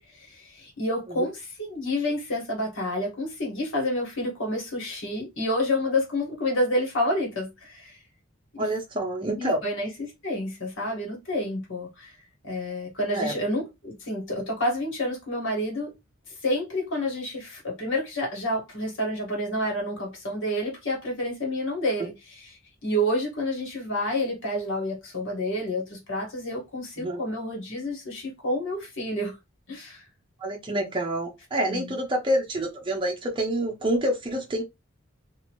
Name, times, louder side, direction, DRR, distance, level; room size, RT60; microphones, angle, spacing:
voice 1, 0.0-8.0 8.5-8.7 9.4-9.9 10.2-12.1 12.4-15.9 16.4-22.1 22.8-29.3 29.7-30.0 31.6-31.9, left 1 dB, 65° left, 1.5 m, -29 dB
voice 2, 8.6-9.6 13.1-13.3 27.0-27.2 30.4-34.6, right 1 dB, 25° right, 0.6 m, -27 dB
2.9 x 2.5 x 3.0 m
head